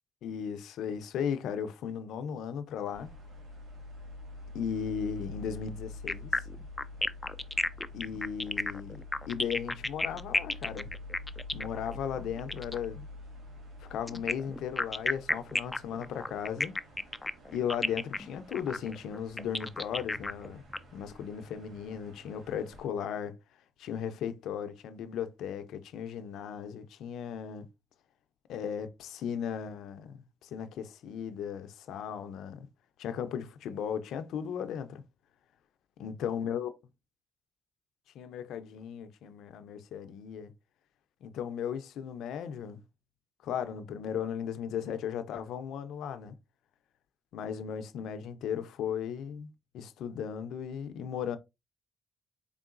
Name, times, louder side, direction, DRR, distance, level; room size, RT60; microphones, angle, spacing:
voice 1, 0.2-3.1 4.5-6.4 7.9-9.0 9.3-10.9 11.5-13.1 13.8-16.7 17.5-20.6 20.9-23.4 23.8-27.7 28.5-32.7 33.0-35.0 36.0-36.7 38.1-40.5 41.2-42.8 43.4-46.4 47.3-51.4, left 8 dB, 80° left, 0.5 m, -36 dB
sound 1, 2.9-22.8, left 2 dB, 75° right, 1.8 m, -47 dB
sound 2, 6.1-12.8 14.1-20.8, left 2 dB, 15° left, 0.4 m, -32 dB
4.6 x 3.6 x 2.4 m
cardioid pair, 90°, 0 cm